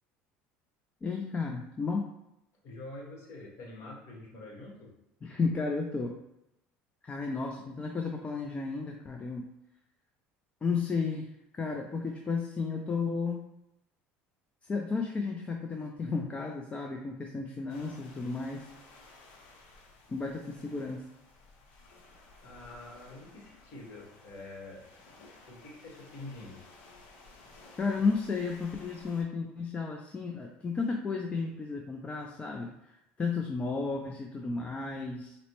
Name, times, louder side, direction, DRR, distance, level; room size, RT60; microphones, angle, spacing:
voice 1, 1.0-2.0 5.2-6.1 7.0-9.5 10.6-13.4 14.6-18.6 20.1-21.0 27.8-35.4, left 4 dB, 25° left, 2 dB, 0.4 m, -33 dB
voice 2, 2.6-4.9 22.4-24.9 25.4-26.6, left 2 dB, 60° left, -2 dB, 1.2 m, -46 dB
sound 1, 17.7-29.2, left 3 dB, 80° left, 0.7 m, -56 dB
4.0 x 2.1 x 3.0 m, 0.87 s
supercardioid pair, 90°, 5 cm